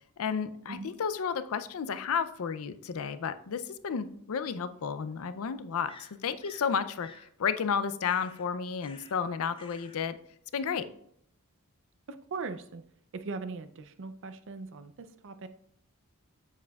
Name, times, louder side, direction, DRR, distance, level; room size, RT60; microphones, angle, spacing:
voice 1, 0.2-10.2 10.5-10.8, left 6 dB, 70° left, 12 dB, 0.5 m, -32 dB
sound 1, 3.8-3.9 5.9-6.7 7.0-7.3 8.0-8.5 8.8-9.3 9.5-10.0, left 3 dB, 25° left, 0.6 m, -52 dB
voice 2, 12.1-12.8 13.1-15.5, right 4 dB, 60° right, 11 dB, 0.5 m, -40 dB
7.4 x 7.2 x 2.3 m, 0.69 s
head